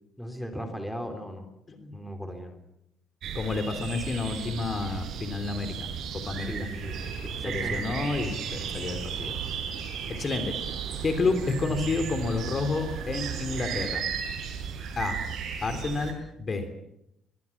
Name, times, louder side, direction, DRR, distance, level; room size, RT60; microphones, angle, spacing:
voice 1, 0.2-1.5 1.9-2.6 6.4-8.1, equal, ahead, 6 dB, 3.6 m, -37 dB
sound 1, 3.2-16.1, right 7 dB, 65° right, 6.5 m, -35 dB
voice 2, 3.3-6.5 7.4-9.6 10.2-10.5 11.0-14.0 15.0-15.2 15.6-16.7, left 3 dB, 30° left, 8 dB, 3.3 m, -30 dB
sound 2, 6.8-13.9, right 6 dB, 90° right, 5.9 m, -42 dB
23.5 x 22.0 x 7.3 m, 0.81 s
cardioid pair, 125°, 0 cm